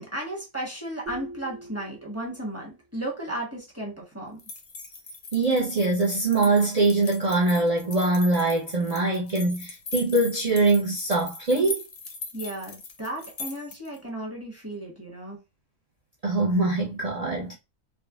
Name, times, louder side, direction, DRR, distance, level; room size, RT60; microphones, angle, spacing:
voice 1, 0.0-4.4 12.3-15.4, right 1 dB, 15° right, 0.7 m, -34 dB
sound 1, 1.1-2.8, right 1 dB, 40° right, 0.9 m, -43 dB
sound 2, 4.4-14.0, left 3 dB, 60° left, 0.5 m, -40 dB
voice 2, 5.3-11.8 16.2-17.6, right 2 dB, 70° right, 0.3 m, -23 dB
3.6 x 2.1 x 2.3 m
omnidirectional pair, 1.4 m